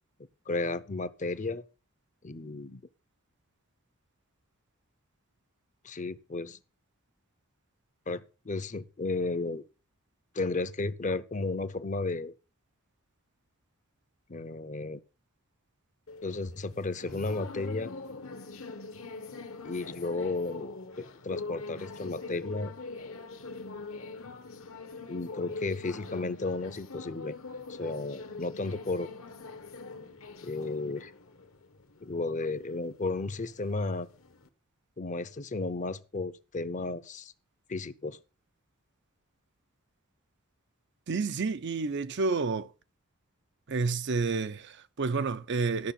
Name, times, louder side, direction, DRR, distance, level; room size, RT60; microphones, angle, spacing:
voice 1, 0.5-1.6 2.2-2.8 5.8-6.6 8.1-9.6 10.3-12.3 14.3-15.0 16.2-17.9 19.6-22.7 25.1-27.3 27.7-29.1 30.4-31.1 32.0-34.1 35.0-37.3 37.7-38.2, left 3 dB, 35° left, 0.7 m, -33 dB
sound 1, 16.1-34.5, left 3 dB, 70° left, 1.3 m, -43 dB
voice 2, 41.1-42.7 43.7-45.9, right 4 dB, 55° right, 0.6 m, -30 dB
12.5 x 6.3 x 5.9 m
head